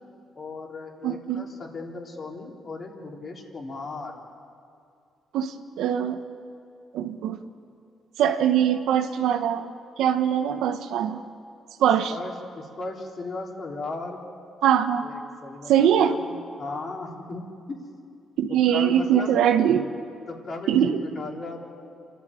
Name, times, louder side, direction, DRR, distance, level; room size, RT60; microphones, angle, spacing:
voice 1, 0.3-4.2 12.1-14.2 15.0-17.8 18.5-19.4 20.3-21.6, left 3 dB, 45° left, 0 dB, 3.7 m, -36 dB
voice 2, 1.0-1.5 5.3-6.2 6.9-7.4 8.2-9.7 10.0-11.2 11.8-12.1 14.6-15.1 15.7-16.2 18.4-19.9 20.7-21.0, right 9 dB, 85° right, 7 dB, 1.2 m, -22 dB
28.0 x 12.5 x 9.1 m, 2.4 s
cardioid pair, 90°, 0 cm